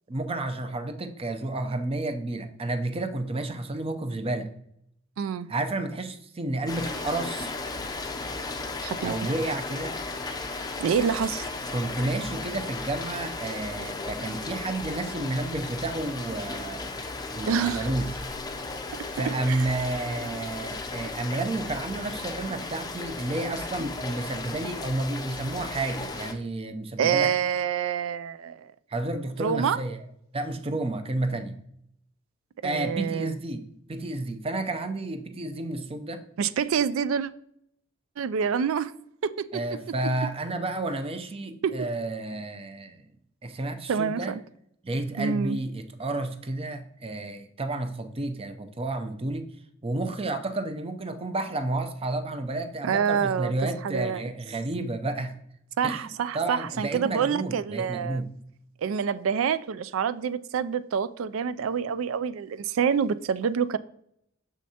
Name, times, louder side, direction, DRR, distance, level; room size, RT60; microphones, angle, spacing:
voice 1, 0.1-4.5 5.5-7.5 9.0-10.0 11.7-17.0 17.3-18.2 19.2-27.3 28.9-30.1 30.3-31.6 32.6-33.6 33.9-36.2 39.5-43.1 43.4-44.4 44.8-49.5 49.8-55.4 55.8-58.4, right 2 dB, 30° right, 0.6 m, -31 dB
voice 2, 5.2-5.5 8.8-9.1 10.8-11.5 17.5-17.9 19.5-19.7 27.0-28.7 29.4-29.8 32.6-33.3 36.4-37.3 38.2-38.9 39.2-39.6 41.6-41.9 43.9-44.4 45.2-45.6 52.8-53.5 53.8-54.2 55.8-58.2 58.8-63.8, right 7 dB, 85° right, 0.4 m, -27 dB
Rain, 6.7-26.3, left 3 dB, 20° left, 0.5 m, -35 dB
6.4 x 6.3 x 2.8 m
head